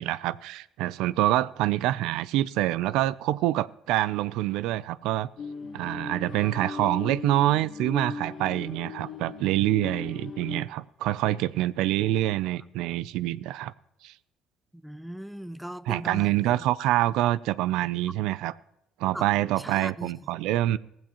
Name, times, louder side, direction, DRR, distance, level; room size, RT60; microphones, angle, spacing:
voice 1, 0.0-5.3 5.7-13.7 14.0-14.1 15.9-18.5 19.0-20.8, right 14 dB, 85° right, 0.4 m, -26 dB
sound 1, 5.4-10.6, left 4 dB, 45° left, 1.3 m, -38 dB
voice 2, 14.7-16.5 19.1-19.3 19.6-20.2, right 1 dB, ahead, 0.4 m, -38 dB
16.5 x 15.5 x 3.0 m
cardioid pair, 130°, 0 cm